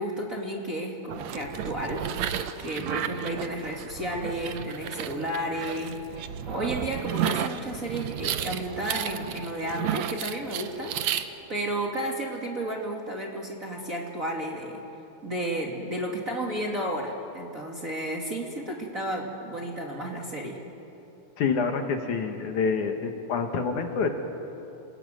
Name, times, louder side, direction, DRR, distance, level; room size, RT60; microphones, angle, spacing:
voice 1, 0.0-2.3 2.6-14.8 15.2-20.6, right 1 dB, 25° right, -1 dB, 2.3 m, -32 dB
sound 1, 1.1-11.2, right 9 dB, 70° right, 1.9 m, -32 dB
voice 2, 21.4-24.1, left 5 dB, 65° left, 5 dB, 2.8 m, -27 dB
29.5 x 21.0 x 9.2 m, 2.9 s
omnidirectional pair, 3.9 m